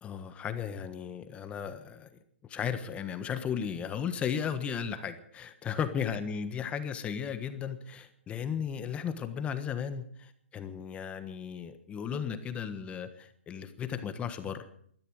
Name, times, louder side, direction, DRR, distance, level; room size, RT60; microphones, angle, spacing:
voice 1, 0.0-2.1 2.5-14.6, left 7 dB, 20° left, 10 dB, 1.4 m, -35 dB
18.5 x 12.5 x 6.4 m, 0.62 s
hypercardioid pair, 140°, 7 cm